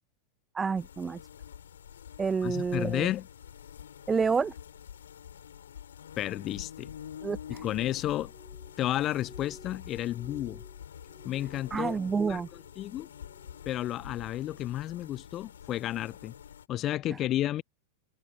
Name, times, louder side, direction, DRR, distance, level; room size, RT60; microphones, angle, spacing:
voice 1, 0.5-1.2 2.2-3.1 4.1-4.5 7.2-7.6 11.7-12.5, right 5 dB, 15° right, 0.8 m, -29 dB
sound 1, 0.8-16.7, left 9 dB, 65° left, 5.0 m, -47 dB
voice 2, 2.4-3.3 6.2-6.9 7.6-8.3 8.8-10.6 11.2-12.0 12.3-12.4 12.8-13.1 13.7-16.4 16.7-17.6, left 13 dB, 35° left, 0.5 m, -32 dB
Glass, 8.2-12.8 13.1-13.7 14.1-14.7 15.2-15.5, left 1 dB, ahead, 6.1 m, -56 dB
figure-of-eight pair, 90°, 0 cm